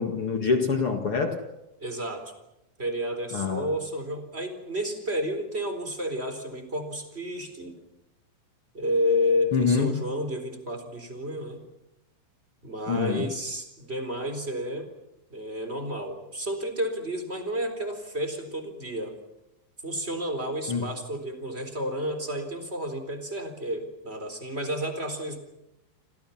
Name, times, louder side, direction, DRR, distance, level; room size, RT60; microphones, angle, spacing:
voice 1, 0.0-1.4 3.3-3.7 9.5-10.1 12.9-13.3 20.7-20.9, left 5 dB, 50° left, 5 dB, 1.8 m, -25 dB
voice 2, 1.8-2.3 2.8-7.8 8.7-11.6 12.6-14.9 15.3-19.2 19.8-25.4, equal, 15° right, 7 dB, 3.7 m, -31 dB
30.0 x 26.0 x 5.8 m, 0.90 s
omnidirectional pair, 5.1 m